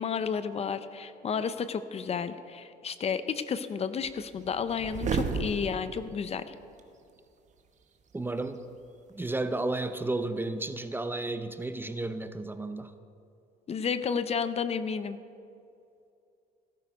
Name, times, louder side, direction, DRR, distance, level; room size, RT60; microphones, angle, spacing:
voice 1, 0.0-6.5 13.7-15.2, left 6 dB, 40° left, 13 dB, 0.6 m, -32 dB
sound 1, 4.0-5.9 6.8-6.9, right 5 dB, 45° right, 1.2 m, -32 dB
voice 2, 8.1-8.6 9.1-12.9, right 2 dB, 10° right, 11 dB, 0.6 m, -32 dB
17.5 x 11.5 x 5.2 m, 2.5 s
cardioid pair, 110°, 17 cm